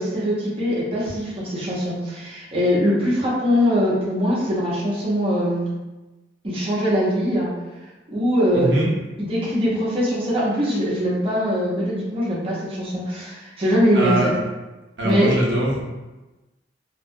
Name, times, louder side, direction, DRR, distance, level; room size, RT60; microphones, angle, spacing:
voice 1, 0.0-5.6 6.4-7.5 8.1-8.7 9.2-14.2 15.0-15.5, equal, 30° right, -7 dB, 0.7 m, -22 dB
voice 2, 8.5-8.9 13.9-14.4 15.0-15.8, right 1 dB, 65° right, -3 dB, 0.7 m, -22 dB
2.8 x 2.2 x 2.6 m, 1.1 s
head